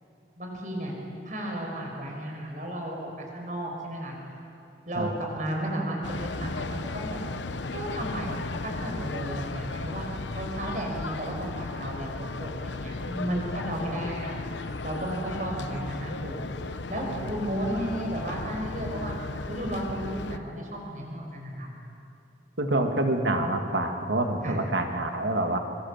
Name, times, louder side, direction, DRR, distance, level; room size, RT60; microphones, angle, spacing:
voice 1, 0.4-0.9 1.2-4.2 4.9-7.2 7.7-8.4 8.6-10.1 10.4-14.3 14.8-19.2 19.5-21.7 24.4-24.6, right 1 dB, 45° right, 0 dB, 5.6 m, -33 dB
sound 1, 6.0-20.4, left 3 dB, 80° left, 0.9 m, -35 dB
voice 2, 22.6-25.6, right 1 dB, 80° right, 4 dB, 2.3 m, -26 dB
25.5 x 23.5 x 7.4 m, 2.7 s
head